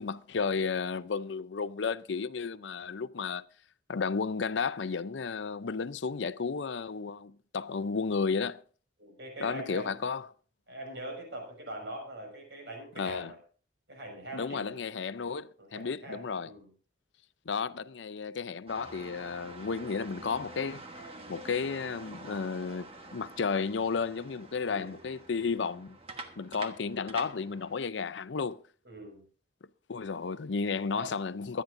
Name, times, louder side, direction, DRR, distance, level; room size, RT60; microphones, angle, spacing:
voice 1, 0.0-3.4 3.9-8.6 9.4-10.3 13.0-13.3 14.3-16.5 17.5-20.8 21.3-26.0 26.4-28.6 29.9-31.6, left 5 dB, 80° left, 0.6 m, -33 dB
voice 2, 9.0-9.9 10.7-13.4 13.9-14.8 15.6-16.7 24.6-25.0 28.8-29.2 30.9-31.1, right 1 dB, 70° right, 6.1 m, -42 dB
sound 1, 18.7-27.8, right 2 dB, 30° right, 1.3 m, -47 dB
24.0 x 10.0 x 2.6 m
head